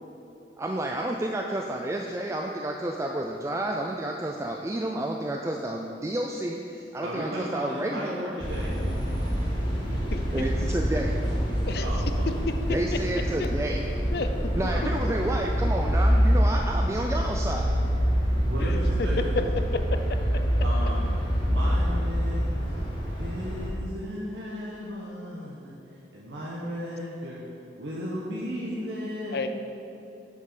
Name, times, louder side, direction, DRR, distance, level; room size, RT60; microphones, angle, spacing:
voice 1, 0.6-8.4 10.3-11.2 12.7-13.8 14.5-17.7, right 1 dB, 15° right, 1 dB, 0.3 m, -30 dB
voice 2, 7.0-8.7 11.8-12.5 14.6-15.3 18.5-19.4 20.6-21.1 21.4-22.8 23.2-27.4 27.8-29.4, equal, 85° right, -6 dB, 1.1 m, -35 dB
sound 1, 8.4-23.7, equal, 25° left, 1.9 m, -26 dB
voice 3, 9.9-10.2 10.6-10.7 11.7-11.9 13.4-13.5 14.1-14.5 18.6-18.8 29.3-29.5, left 4 dB, 60° left, 8 dB, 0.5 m, -33 dB
6.6 x 5.5 x 6.8 m, 2.8 s
head